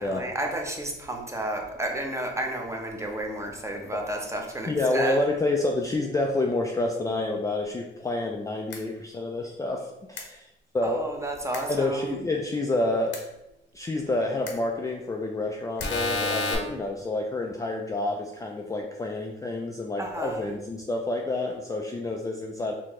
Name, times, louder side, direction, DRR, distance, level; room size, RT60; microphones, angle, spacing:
voice 1, 0.0-5.2 10.8-12.3 20.0-20.6, right 1 dB, 15° right, 1 dB, 0.7 m, -32 dB
voice 2, 4.7-10.4 10.7-11.0 11.7-13.2 13.7-22.7, left 2 dB, 15° left, 1 dB, 0.3 m, -28 dB
sound 1, 8.7-8.8 10.2-10.3 11.5-11.6 13.1-13.2 14.5-14.6 15.8-16.5, left 3 dB, 70° left, 0.8 m, -29 dB
4.1 x 2.7 x 3.0 m, 0.93 s
cardioid pair, 90°, 20 cm